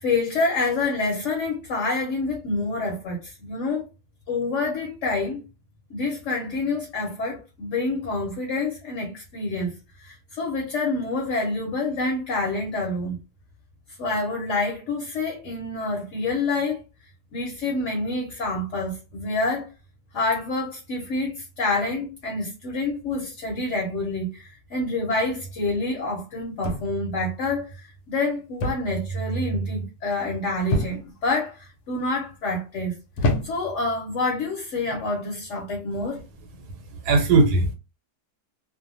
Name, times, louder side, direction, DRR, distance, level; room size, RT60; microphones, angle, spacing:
voice 1, 0.0-3.9 4.3-5.4 5.9-13.2 14.0-16.8 17.3-19.7 20.1-33.0 33.4-36.2, left 2 dB, 60° left, 1.0 m, -27 dB
sound 1, 26.6-27.2 28.6-29.0 29.3-29.7 30.7-31.2 32.0-32.3 33.2-33.8 34.8-35.0, left 1 dB, 85° left, 1.2 m, -27 dB
voice 2, 36.6-37.7, right 3 dB, 90° right, 1.2 m, -20 dB
2.7 x 2.1 x 2.5 m
omnidirectional pair, 1.7 m